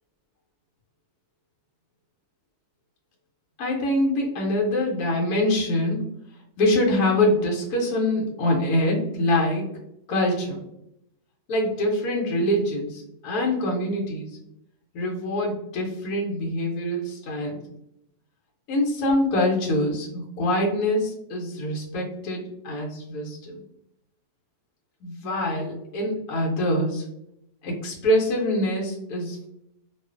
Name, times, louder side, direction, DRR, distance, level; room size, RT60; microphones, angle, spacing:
voice 1, 3.6-6.0 6.6-9.7 10.1-10.6 11.5-14.3 14.9-17.6 18.7-23.6 25.0-27.1 27.6-29.5, left 1 dB, 75° left, -1 dB, 1.0 m, -24 dB
2.4 x 2.3 x 2.3 m, 0.80 s
omnidirectional pair, 1.7 m